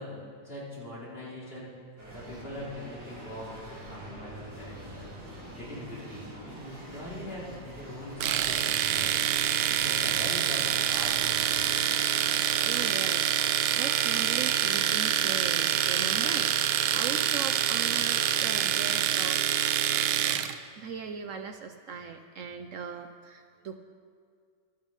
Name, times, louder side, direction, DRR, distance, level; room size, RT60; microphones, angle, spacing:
voice 1, 0.0-1.7 2.1-5.1 5.5-9.1 9.7-11.5, left 1 dB, 35° left, -6 dB, 3.8 m, -41 dB
sound 1, 2.0-20.3, right 1 dB, 45° right, 5.2 m, -45 dB
Domestic sounds home sounds, 8.2-20.5, right 10 dB, 85° right, 1.2 m, -26 dB
voice 2, 12.6-20.0 20.8-23.8, right 6 dB, 60° right, 6 dB, 0.9 m, -39 dB
13.5 x 12.5 x 5.3 m, 2.1 s
omnidirectional pair, 1.8 m